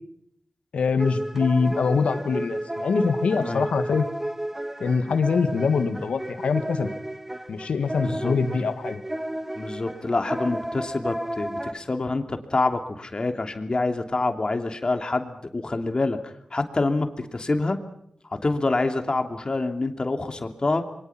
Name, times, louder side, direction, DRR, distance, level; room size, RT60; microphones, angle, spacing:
voice 1, 0.7-4.1 4.8-6.9 7.5-9.0, left 5 dB, 85° left, 9 dB, 1.8 m, -24 dB
sound 1, 1.0-11.7, right 1 dB, 15° right, 1.7 m, -32 dB
voice 2, 8.0-8.3 9.5-17.8 18.3-20.9, left 3 dB, 45° left, 6 dB, 2.9 m, -26 dB
27.0 x 23.0 x 6.0 m, 0.70 s
cardioid pair, 40°, 2 cm